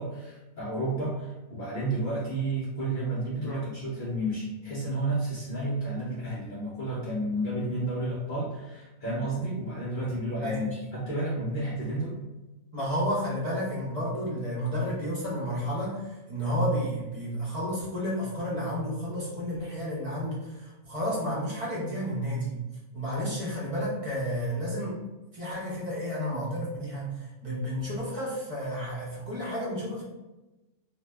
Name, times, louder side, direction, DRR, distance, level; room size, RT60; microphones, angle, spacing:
voice 1, 0.0-12.2, right 1 dB, 55° left, -6 dB, 0.6 m, -31 dB
voice 2, 12.7-22.5 22.9-25.0 25.3-30.0, equal, 30° right, -7 dB, 0.7 m, -31 dB
2.7 x 2.2 x 3.2 m, 1.1 s
omnidirectional pair, 1.5 m